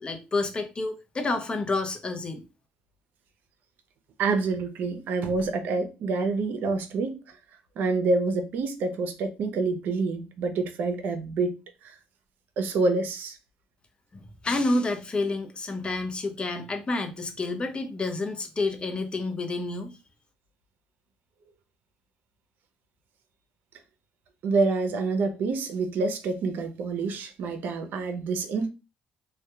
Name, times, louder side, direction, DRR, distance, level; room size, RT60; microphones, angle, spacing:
voice 1, 0.0-2.4 14.4-20.0, left 2 dB, 30° left, 0.6 m, -29 dB
voice 2, 4.2-7.4 7.8-12.0 12.6-13.4 24.4-28.7, right 3 dB, 70° right, 0.5 m, -27 dB
2.7 x 2.2 x 2.3 m
cardioid pair, 85°, 3 cm